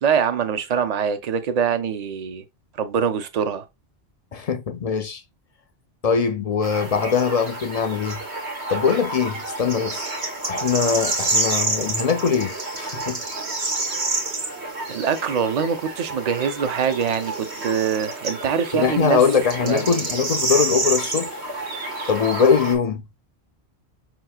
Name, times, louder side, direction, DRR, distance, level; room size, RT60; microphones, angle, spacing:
voice 1, 0.0-2.4 2.8-3.6 14.9-19.2 19.6-20.0, right 7 dB, 45° right, 0.7 m, -24 dB
voice 2, 4.3-5.2 6.0-8.2 8.7-10.1 10.5-13.2 18.7-21.4 22.1-23.0, left 6 dB, 55° left, 0.4 m, -22 dB
sound 1, 6.6-22.8, right 2 dB, 85° right, 1.6 m, -28 dB
5.5 x 3.0 x 2.2 m
omnidirectional pair, 1.1 m